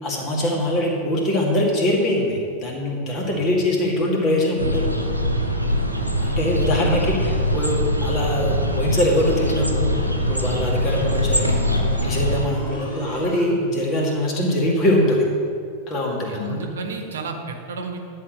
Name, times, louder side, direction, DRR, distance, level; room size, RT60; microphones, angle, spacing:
voice 1, 0.0-4.9 6.2-11.7 12.0-15.3 15.9-16.6, left 1 dB, 35° left, -1 dB, 2.2 m, -22 dB
sound 1, 4.6-12.5, equal, 90° right, 0.9 m, -23 dB
sound 2, 7.0-13.4, left 1 dB, 60° left, 2.5 m, -36 dB
voice 2, 16.2-18.0, right 4 dB, 65° right, 4 dB, 1.1 m, -32 dB
11.0 x 4.5 x 7.5 m, 2.3 s
figure-of-eight pair, 90°, 0 cm